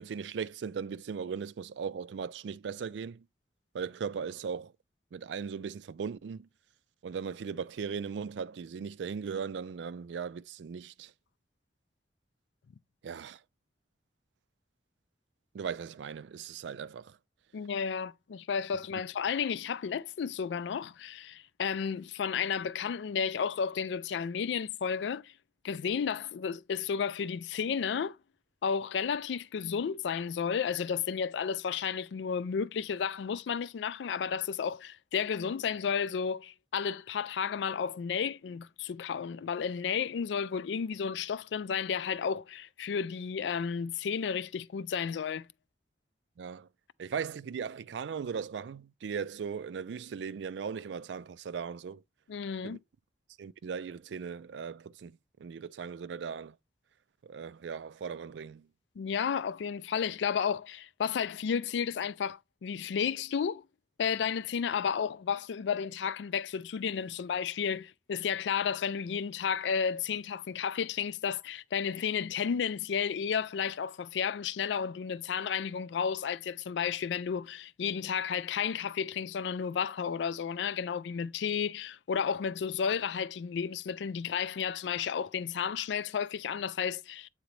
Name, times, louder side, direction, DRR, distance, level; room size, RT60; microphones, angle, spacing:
voice 1, 0.0-3.2 3.7-4.7 5.1-6.5 7.0-11.1 13.0-13.4 15.5-17.2 46.4-46.7 47.0-52.0 52.6-52.8 53.4-56.6 57.2-58.7, right 6 dB, 80° right, 0.4 m, -38 dB
voice 2, 17.5-25.3 25.6-28.2 28.6-45.5 52.3-52.8 59.0-63.6 64.0-87.3, left 7 dB, 80° left, 0.4 m, -32 dB
8.2 x 3.9 x 3.1 m
head